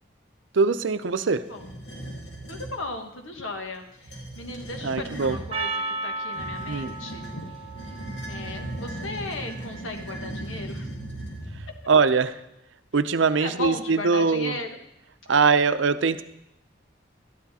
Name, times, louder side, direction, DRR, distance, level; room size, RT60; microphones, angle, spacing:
voice 1, 0.5-1.4 4.8-5.4 6.7-6.9 11.9-12.3 12.9-14.6 15.3-16.2, right 5 dB, 75° right, 11 dB, 0.6 m, -22 dB
voice 2, 1.2-1.7 2.5-7.5 8.2-10.9 13.4-14.7 15.3-15.4, left 2 dB, 90° left, 4 dB, 1.5 m, -36 dB
sound 1, 1.5-2.8 3.9-5.5 6.3-11.8, right 1 dB, 60° left, 2.5 m, -37 dB
Percussion, 5.5-10.1, right 2 dB, 30° right, 1.1 m, -35 dB
12.5 x 10.5 x 4.2 m, 0.85 s
head